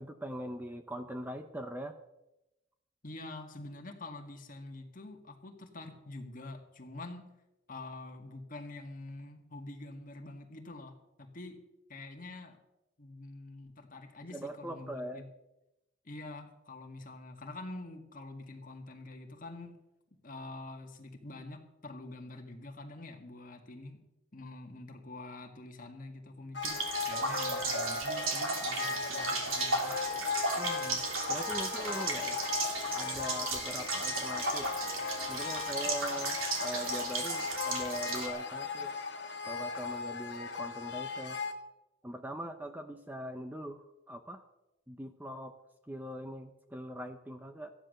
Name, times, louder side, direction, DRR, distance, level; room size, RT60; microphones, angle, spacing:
voice 1, 0.0-2.0 14.3-15.2 30.6-32.4 32.9-34.7 35.3-38.9 39.4-41.4 42.0-44.4 44.9-45.5 45.9-47.7, right 1 dB, 10° right, 7 dB, 0.7 m, -42 dB
voice 2, 3.0-7.3 7.7-11.6 11.9-12.6 13.0-15.2 16.0-19.8 20.2-24.0 24.3-29.9, left 2 dB, 40° left, 4 dB, 1.9 m, -46 dB
sound 1, 26.5-41.5, left 5 dB, 55° left, 1.6 m, -37 dB
sound 2, 26.6-38.3, right 3 dB, 90° right, 3.1 m, -35 dB
14.5 x 10.0 x 6.6 m, 0.93 s
head